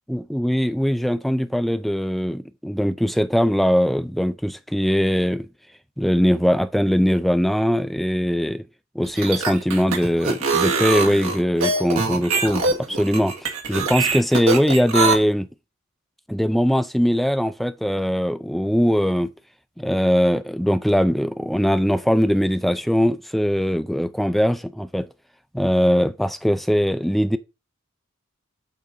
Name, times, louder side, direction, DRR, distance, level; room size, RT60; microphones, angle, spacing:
voice 1, 0.1-5.5 6.0-8.6 8.9-15.5 16.3-19.3 19.8-25.1 25.5-27.4, equal, ahead, 0.4 m, -21 dB
sound 1, 9.0-15.1, right 3 dB, 85° right, 2.0 m, -23 dB
8.4 x 3.9 x 5.2 m
head